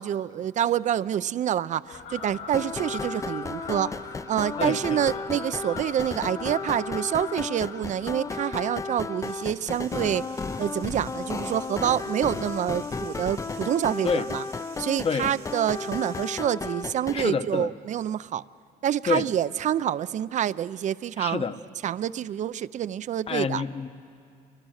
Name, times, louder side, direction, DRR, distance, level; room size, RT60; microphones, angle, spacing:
voice 1, 0.0-3.9 4.3-10.2 10.6-14.4 14.8-18.4 18.8-21.5 21.8-23.6, right 10 dB, 45° right, 0.5 m, -27 dB
Fowl, 1.9-12.7 13.1-13.3 14.1-14.6 14.9-15.0 15.2-15.3 15.6-15.7 16.1-16.2 17.2-17.3 17.9-18.0, left 6 dB, 85° left, 5.0 m, -43 dB
sound 1, 2.5-17.3, left 4 dB, 20° left, 0.5 m, -34 dB
sound 2, 9.2-16.4, right 11 dB, 70° right, 1.0 m, -51 dB
voice 2, 15.0-15.3 17.1-17.7 19.1-19.3 21.2-21.6 23.3-23.9, left 5 dB, 35° left, 1.0 m, -27 dB
29.5 x 24.0 x 6.4 m
cardioid pair, 110°, 17 cm